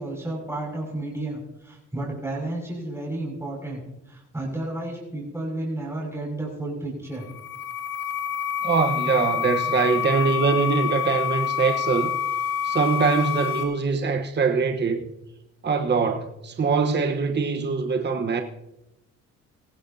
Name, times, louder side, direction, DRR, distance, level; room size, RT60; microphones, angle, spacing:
voice 1, 0.0-7.3, right 1 dB, 10° right, 6.0 m, -32 dB
sound 1, 7.1-13.6, left 8 dB, 80° left, 2.6 m, -27 dB
voice 2, 8.6-12.1 12.6-15.1 15.6-18.4, right 5 dB, 35° right, 1.1 m, -23 dB
18.0 x 15.0 x 2.8 m
cardioid pair, 80°, 32 cm